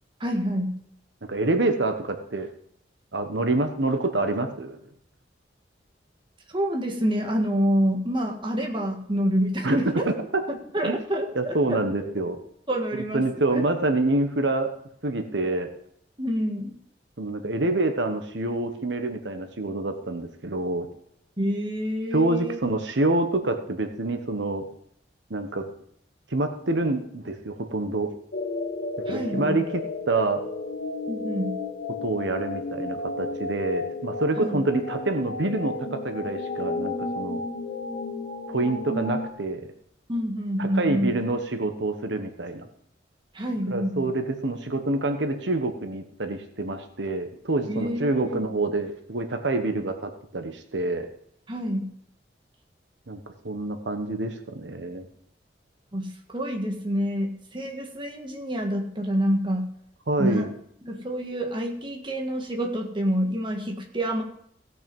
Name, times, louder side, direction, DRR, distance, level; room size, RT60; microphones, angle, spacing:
voice 1, 0.2-0.7 6.5-10.1 10.7-11.8 12.7-13.2 13.5-13.7 16.2-16.7 21.4-22.6 29.1-29.6 31.1-31.5 34.4-34.6 40.1-41.1 43.3-44.1 47.7-48.4 51.5-51.9 55.9-59.7 60.2-60.5 60.8-64.2, equal, 25° right, 2 dB, 1.7 m, -27 dB
voice 2, 1.3-2.5 3.1-4.8 9.6-9.8 10.1-10.2 10.8-11.0 11.3-12.4 12.9-14.7 15.0-15.7 17.2-20.9 22.1-24.6 25.3-25.6 26.3-28.1 29.1-29.6 30.1-30.4 32.0-37.4 38.5-39.6 40.6-42.7 43.7-51.1 53.1-53.2 53.4-55.1 60.1-60.5, right 2 dB, 80° right, 7 dB, 1.1 m, -27 dB
sound 1, 28.3-39.3, left 3 dB, 70° left, 1.9 m, -33 dB
16.5 x 6.1 x 5.4 m, 0.69 s
head